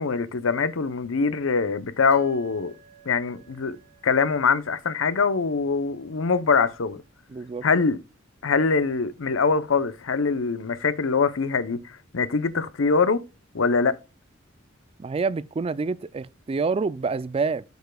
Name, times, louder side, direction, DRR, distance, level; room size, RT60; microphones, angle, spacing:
voice 1, 0.0-2.7 3.1-3.8 4.0-7.0 7.6-8.0 8.4-11.8 12.1-13.2 13.5-13.9, left 5 dB, 85° left, 0.7 m, -23 dB
sound 1, 2.1-6.8, right 5 dB, 45° right, 1.3 m, -55 dB
voice 2, 7.3-7.6 15.0-17.6, right 4 dB, 30° right, 0.3 m, -27 dB
8.0 x 6.8 x 2.3 m
head